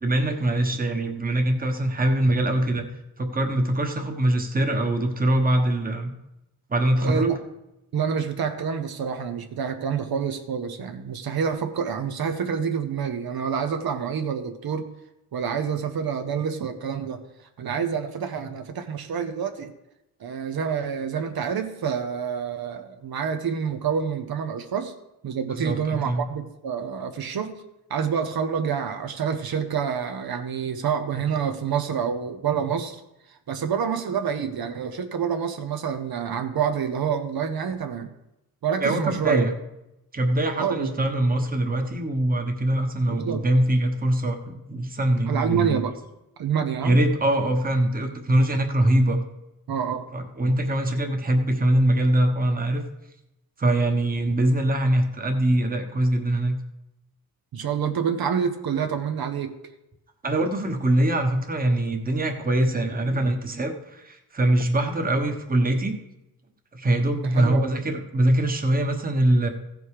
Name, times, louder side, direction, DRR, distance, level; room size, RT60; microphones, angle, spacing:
voice 1, 0.0-2.9 3.2-6.1 6.7-7.3 25.5-26.2 38.8-39.6 40.1-45.8 46.8-49.2 50.1-52.8 53.6-56.6 60.2-65.9 66.7-69.5, right 1 dB, 25° right, 4 dB, 1.1 m, -23 dB
voice 2, 7.0-7.4 7.9-14.9 15.3-17.2 17.6-19.7 20.2-24.9 25.2-27.5 27.9-33.0 33.5-38.1 38.6-39.4 40.6-40.9 43.1-43.4 45.3-45.9 46.4-47.0 49.7-50.1 57.5-59.5 67.3-67.7, right 7 dB, 75° right, 7 dB, 0.9 m, -27 dB
15.5 x 5.4 x 4.8 m, 0.90 s
wide cardioid pair, 140°, 37 cm